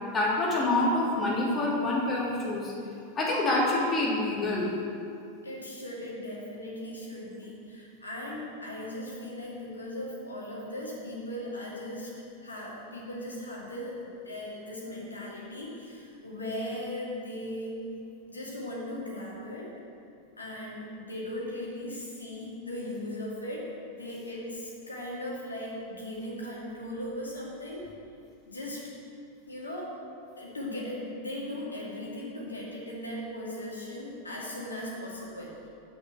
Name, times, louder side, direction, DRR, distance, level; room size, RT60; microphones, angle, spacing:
voice 1, 0.1-2.7 3.1-4.7, left 2 dB, 20° left, -5 dB, 2.9 m, -26 dB
voice 2, 5.4-12.1 12.4-17.8 18.3-19.7 20.4-27.9 28.5-28.8 29.5-29.9 30.4-35.7, left 1 dB, 80° left, -4 dB, 2.4 m, -38 dB
7.8 x 6.7 x 7.9 m, 2.5 s
figure-of-eight pair, 90°, 0 cm